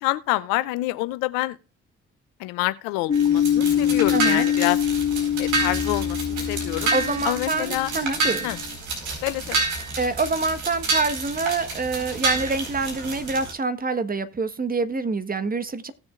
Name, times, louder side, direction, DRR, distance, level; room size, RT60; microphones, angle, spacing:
voice 1, 0.0-1.6 2.4-4.8 5.4-6.9 7.2-7.9 8.4-8.6 9.2-9.6, left 18 dB, 80° left, 0.7 m, -27 dB
sound 1, 3.1-8.6, left 10 dB, 40° left, 2.3 m, -24 dB
sound 2, 3.1-13.5, right 3 dB, 65° right, 4.6 m, -29 dB
voice 2, 4.1-4.5 6.9-8.5 10.0-15.9, right 3 dB, 25° right, 1.3 m, -26 dB
18.0 x 7.0 x 2.5 m
hypercardioid pair, 50°, 32 cm